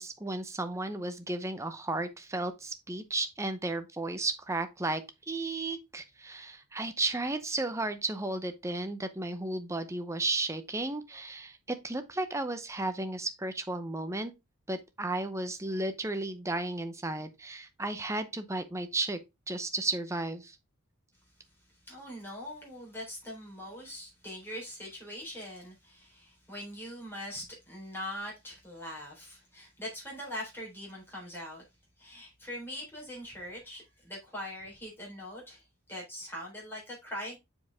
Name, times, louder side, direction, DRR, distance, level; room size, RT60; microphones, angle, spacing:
voice 1, 0.0-14.3 14.7-19.2 19.5-20.6, right 2 dB, 15° right, 0.7 m, -34 dB
voice 2, 21.8-31.7 32.0-37.4, equal, 10° left, 3.8 m, -42 dB
6.9 x 5.0 x 3.5 m
head